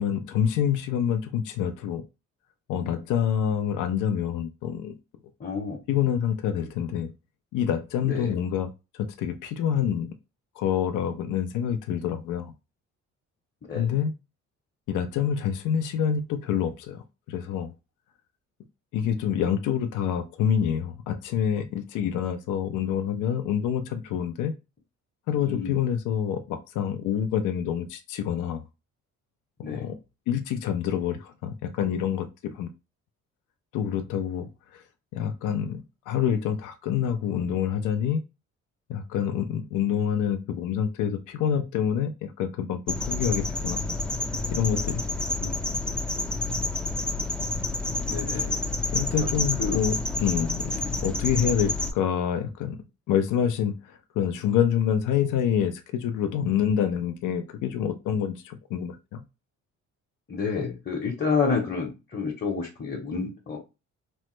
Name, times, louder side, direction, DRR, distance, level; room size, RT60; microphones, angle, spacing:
voice 1, 0.0-2.0 2.7-4.9 5.9-7.1 7.5-10.1 10.6-12.5 13.7-14.1 14.9-17.7 18.9-24.5 25.3-28.6 29.7-29.9 30.3-32.7 33.7-34.8 35.1-38.2 38.9-43.8 44.5-45.0 48.3-48.5 48.9-59.2, left 8 dB, 85° left, 0.5 m, -27 dB
voice 2, 5.4-5.8 8.0-8.3 13.6-14.0 25.5-25.8 29.6-29.9 45.4-45.7 48.1-48.6 49.1-49.3 49.6-49.8 50.8-51.0 60.3-63.6, left 5 dB, 30° left, 0.9 m, -30 dB
sound 1, 42.9-51.9, left 2 dB, 5° left, 0.3 m, -29 dB
3.0 x 2.1 x 3.0 m
cardioid pair, 90°, 30 cm